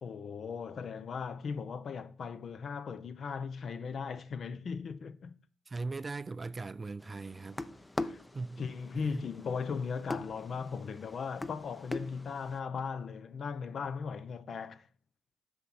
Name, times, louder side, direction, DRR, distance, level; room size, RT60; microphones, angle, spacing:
voice 1, 0.0-5.4 8.0-8.2 8.6-14.9, left 5 dB, 55° left, 0.8 m, -38 dB
voice 2, 5.7-7.6 8.3-8.6 8.9-9.2, right 3 dB, 25° right, 0.3 m, -39 dB
sound 1, 7.0-12.6, left 2 dB, 15° left, 0.6 m, -42 dB
8.5 x 6.2 x 5.5 m
cardioid pair, 90°, 0 cm